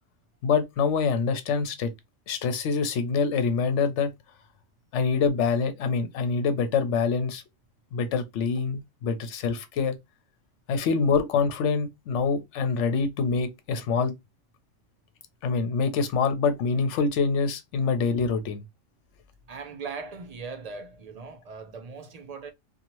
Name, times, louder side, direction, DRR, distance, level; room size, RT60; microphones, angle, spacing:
voice 1, 0.4-1.9 2.3-4.1 4.9-7.4 7.9-10.0 10.7-14.1 15.4-18.6, left 5 dB, 70° left, 0.9 m, -25 dB
voice 2, 19.5-22.5, right 4 dB, 65° right, 0.4 m, -39 dB
2.7 x 2.3 x 2.9 m
omnidirectional pair, 1.3 m